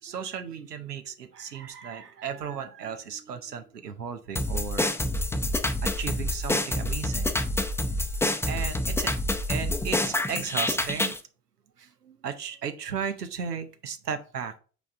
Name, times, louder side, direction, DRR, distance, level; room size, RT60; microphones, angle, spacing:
voice 1, 0.0-4.9 5.8-7.3 8.5-9.1 9.5-11.1 11.8-14.6, right 7 dB, 90° right, 8 dB, 0.7 m, -35 dB
sound 1, 4.4-11.2, left 1 dB, 5° left, 0.6 m, -27 dB
8.3 x 3.5 x 3.5 m, 0.38 s
figure-of-eight pair, 65°, 46 cm